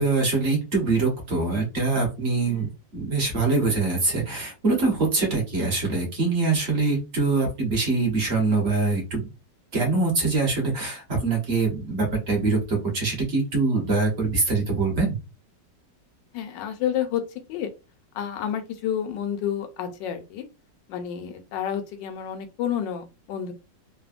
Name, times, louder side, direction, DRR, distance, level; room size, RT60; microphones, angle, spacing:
voice 1, 0.0-9.2 9.7-15.2, right 3 dB, 45° right, 0 dB, 1.0 m, -24 dB
voice 2, 16.3-17.2 17.5-17.7 18.1-20.4 20.9-23.5, left 9 dB, 85° left, 7 dB, 1.3 m, -30 dB
3.3 x 2.1 x 2.4 m, 0.27 s
omnidirectional pair, 1.9 m